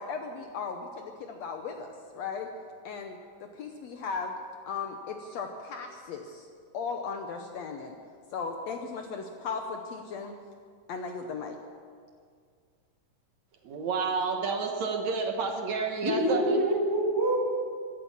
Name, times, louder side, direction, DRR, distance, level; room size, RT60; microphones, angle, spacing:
voice 1, 0.0-1.9 2.1-2.5 2.8-4.3 4.7-6.5 6.7-7.9 8.3-10.3 10.9-11.6, left 5 dB, 70° left, 4 dB, 1.8 m, -36 dB
voice 2, 13.6-16.6, right 4 dB, 65° right, 3 dB, 2.3 m, -30 dB
voice 3, 16.0-17.4, right 1 dB, 5° right, -3 dB, 2.4 m, -26 dB
15.5 x 12.5 x 7.2 m, 2.1 s
omnidirectional pair, 3.7 m